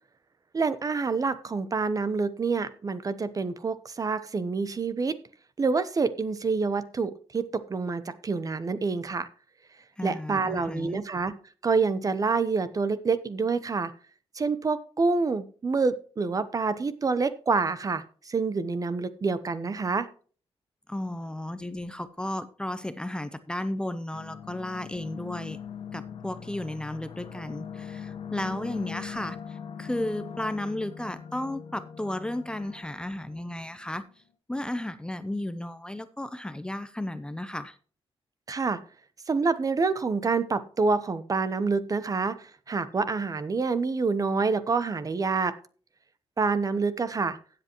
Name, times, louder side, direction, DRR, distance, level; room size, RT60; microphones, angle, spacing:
voice 1, 0.5-5.2 5.6-9.3 10.0-11.3 11.6-13.9 14.4-20.1 38.5-38.8 39.3-42.4 42.7-45.5 46.4-47.4, right 4 dB, 35° right, 14 dB, 0.9 m, -27 dB
voice 2, 10.0-11.0 20.9-25.6 25.9-34.0 34.5-37.8, left 1 dB, 10° left, 12 dB, 0.7 m, -34 dB
sound 1, 24.1-33.9, left 7 dB, 75° left, 1.6 m, -41 dB
16.0 x 7.8 x 3.0 m, 0.41 s
cardioid pair, 105°, 10 cm